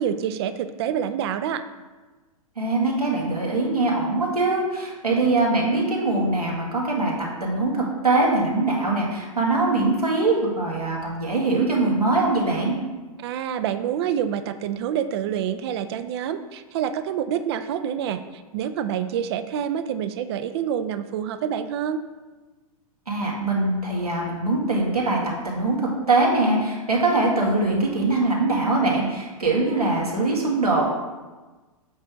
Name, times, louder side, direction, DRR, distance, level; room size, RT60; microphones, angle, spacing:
voice 1, 0.0-1.6 13.2-22.0, right 9 dB, 45° right, 10 dB, 0.5 m, -27 dB
voice 2, 2.6-12.7 23.1-30.9, right 2 dB, 90° right, -3 dB, 2.0 m, -22 dB
8.1 x 3.3 x 6.3 m, 1.2 s
figure-of-eight pair, 110°, 19 cm